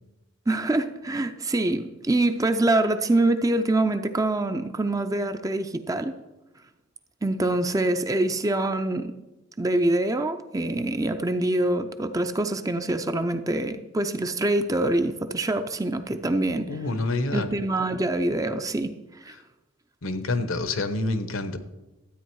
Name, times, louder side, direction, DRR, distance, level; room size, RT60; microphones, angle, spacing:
voice 1, 0.5-6.1 7.2-9.1 9.6-16.8 17.3-18.9 19.2-19.3, right 2 dB, 15° right, 9 dB, 0.5 m, -25 dB
voice 2, 16.7-17.5 20.0-21.6, left 2 dB, 70° left, 10 dB, 1.0 m, -27 dB
12.5 x 9.0 x 4.7 m, 1.0 s
head